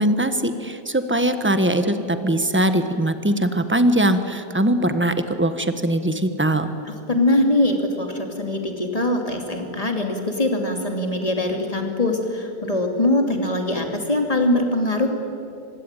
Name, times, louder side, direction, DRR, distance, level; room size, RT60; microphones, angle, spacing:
voice 1, 0.0-6.7, right 1 dB, 10° right, 9 dB, 1.1 m, -21 dB
voice 2, 7.1-15.1, left 1 dB, 20° left, 3 dB, 2.8 m, -22 dB
25.5 x 21.5 x 9.1 m, 2.7 s
omnidirectional pair, 1.8 m